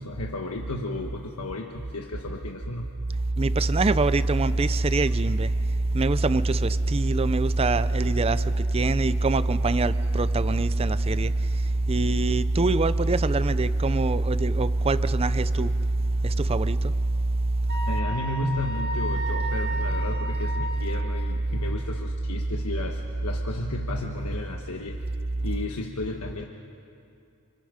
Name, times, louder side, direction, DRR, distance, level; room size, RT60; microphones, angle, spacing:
voice 1, 0.0-2.9 3.3-3.4 10.7-10.8 17.8-26.4, left 2 dB, 85° left, 1.3 m, -33 dB
voice 2, 3.4-5.5 5.9-8.4 8.7-11.3 11.9-15.7 16.2-16.8, right 2 dB, 25° right, 0.5 m, -23 dB
Wind instrument woodwind instrument, 17.7-21.2, equal, 45° right, 1.2 m, -34 dB
27.5 x 25.5 x 5.1 m
head